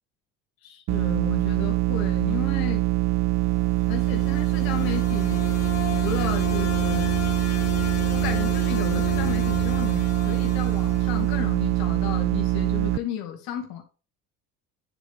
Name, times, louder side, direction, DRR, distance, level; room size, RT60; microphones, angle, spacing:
voice 1, 0.6-2.8 3.9-5.5 5.8-7.1 8.1-13.8, left 9 dB, 75° left, 2.4 m, -34 dB
sound 1, 0.9-13.0, right 20 dB, 50° right, 0.6 m, -24 dB
sound 2, 3.6-11.7, left 6 dB, 45° left, 3.2 m, -34 dB
9.7 x 5.1 x 3.5 m
supercardioid pair, 90°, 36 cm